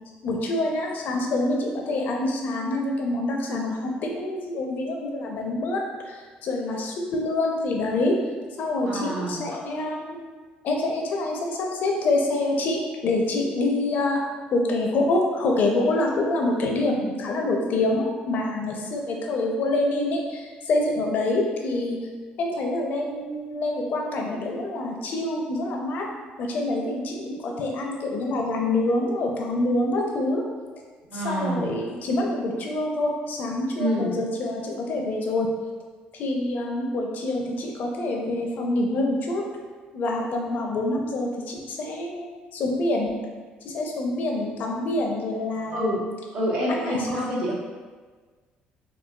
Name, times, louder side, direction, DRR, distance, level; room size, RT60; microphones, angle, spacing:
voice 1, 0.2-8.2 8.6-10.2 10.6-14.2 14.5-22.0 22.4-26.0 26.4-30.4 31.1-35.5 36.1-39.4 39.9-42.2 42.5-43.1 43.6-46.0 46.7-47.4, left 2 dB, 60° left, 0 dB, 0.5 m, -26 dB
voice 2, 8.8-9.4 31.1-31.7 33.7-34.1 45.7-46.0 46.3-47.5, equal, 75° right, -7 dB, 1.1 m, -27 dB
3.7 x 2.3 x 2.3 m, 1.4 s
cardioid pair, 100°, 3 cm